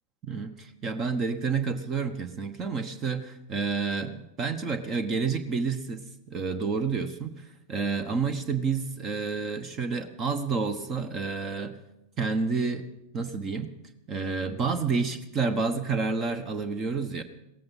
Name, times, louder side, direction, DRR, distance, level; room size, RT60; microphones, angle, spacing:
voice 1, 0.2-11.8 12.2-12.9 13.1-13.7 14.1-17.2, right 4 dB, 30° right, 11 dB, 1.1 m, -29 dB
17.0 x 14.5 x 5.7 m, 0.88 s
figure-of-eight pair, 90°, 0 cm